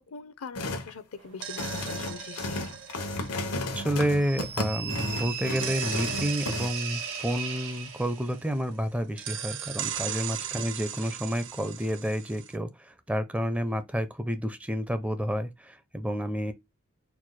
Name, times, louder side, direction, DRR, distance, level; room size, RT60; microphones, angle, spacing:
voice 1, 0.1-2.8 10.1-10.4, left 5 dB, 70° left, 0.6 m, -42 dB
sound 1, 0.6-0.9 1.4-6.7, left 2 dB, 90° left, 1.0 m, -34 dB
sound 2, 1.2-4.9 5.6-8.8 9.2-12.6, right 9 dB, 55° right, 0.6 m, -39 dB
voice 2, 3.7-16.5, equal, 5° right, 0.4 m, -30 dB
sound 3, 4.2-8.4, right 7 dB, 80° right, 1.9 m, -36 dB
4.5 x 2.3 x 4.1 m
head